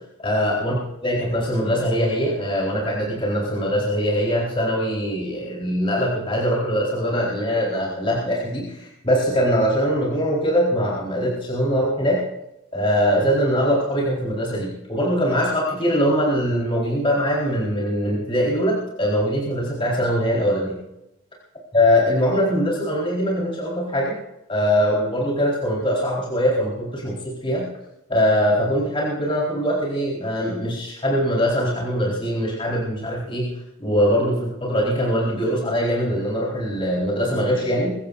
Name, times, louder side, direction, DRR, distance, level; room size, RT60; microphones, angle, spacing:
voice 1, 0.2-0.8 1.0-12.2 12.7-20.8 21.7-24.1 24.5-27.7 28.1-33.5 33.8-38.0, equal, 30° left, -4 dB, 4.3 m, -22 dB
23.5 x 15.5 x 2.6 m, 0.87 s
head